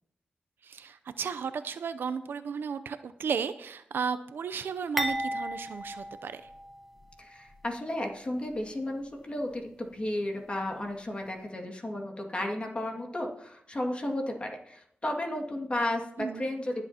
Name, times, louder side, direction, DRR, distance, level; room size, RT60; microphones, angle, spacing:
voice 1, 0.6-6.5 16.2-16.5, right 6 dB, 80° right, 12 dB, 0.6 m, -34 dB
sound 1, 5.0-7.1 7.5-7.6 8.5-8.7, right 1 dB, ahead, 1.2 m, -34 dB
voice 2, 7.2-16.8, left 1 dB, 30° left, 1 dB, 2.1 m, -33 dB
23.5 x 8.3 x 2.9 m, 0.75 s
cardioid pair, 65°, 4 cm